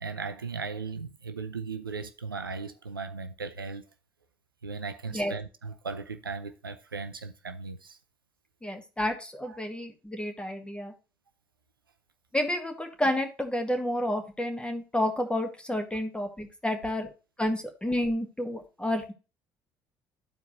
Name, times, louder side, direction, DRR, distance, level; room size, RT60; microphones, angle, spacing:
voice 1, 0.0-3.8 4.6-8.0 9.4-9.6, right 4 dB, 90° right, 0.5 m, -37 dB
voice 2, 8.6-10.9 12.3-17.1 17.4-19.1, left 1 dB, 10° left, 1.9 m, -30 dB
13.0 x 4.6 x 2.7 m
figure-of-eight pair, 55°, 11 cm